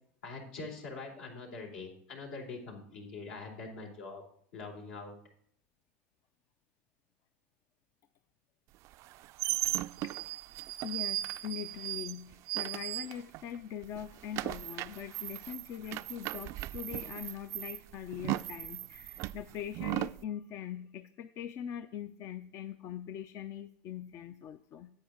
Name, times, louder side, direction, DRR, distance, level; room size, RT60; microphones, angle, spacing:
voice 1, 0.2-4.2 4.5-5.2, left 3 dB, 75° left, 0 dB, 3.8 m, -44 dB
sound 1, 8.9-13.6 13.8-20.2, right 16 dB, 50° right, 0.3 m, -37 dB
voice 2, 10.8-24.9, left 9 dB, 45° left, 10 dB, 0.5 m, -42 dB
9.8 x 8.6 x 3.8 m, 0.63 s
hypercardioid pair, 105°, 7 cm